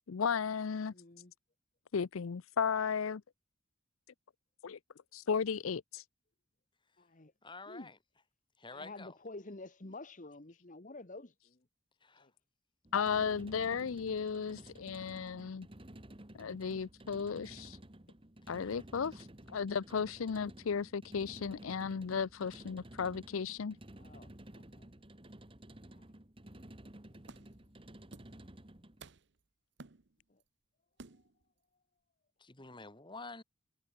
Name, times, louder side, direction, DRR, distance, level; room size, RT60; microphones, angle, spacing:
voice 1, 0.1-0.9 1.9-3.2 4.6-4.8 5.1-6.0 12.9-15.7 16.4-17.8 18.5-23.8, left 6 dB, 85° left, 0.5 m, -35 dB
voice 2, 0.9-1.3 7.0-7.3 7.7-7.9 8.7-11.6 12.2-12.3 13.2-13.4 24.0-24.9 25.9-26.1 27.1-27.5 30.3-30.4 31.1-31.2, left 2 dB, 40° left, 1.4 m, -50 dB
voice 3, 7.4-8.0 8.6-9.2 12.0-12.3 18.6-18.8 32.4-33.4, left 3 dB, 25° left, 3.1 m, -49 dB
sound 1, 12.8-29.0, right 1 dB, 25° right, 1.7 m, -53 dB
sound 2, 27.2-27.7 28.1-28.4 28.7-29.4 29.8-30.4 31.0-31.4, right 3 dB, 60° right, 1.0 m, -54 dB
head